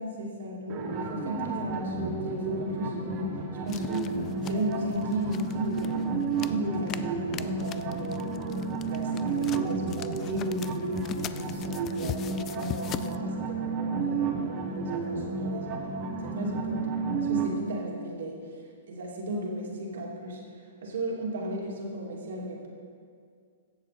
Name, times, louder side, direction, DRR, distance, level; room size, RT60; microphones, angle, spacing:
voice 1, 0.0-18.4 18.9-20.4 20.8-22.7, right 1 dB, 70° right, -2 dB, 2.6 m, -35 dB
sound 1, 0.7-17.5, right 4 dB, 35° right, 1.4 m, -32 dB
sound 2, 1.5-11.5, left 5 dB, 55° left, 2.0 m, -45 dB
sound 3, 3.7-13.2, left 11 dB, 30° left, 0.3 m, -42 dB
15.5 x 7.5 x 4.2 m, 2.2 s
hypercardioid pair, 125°, 0 cm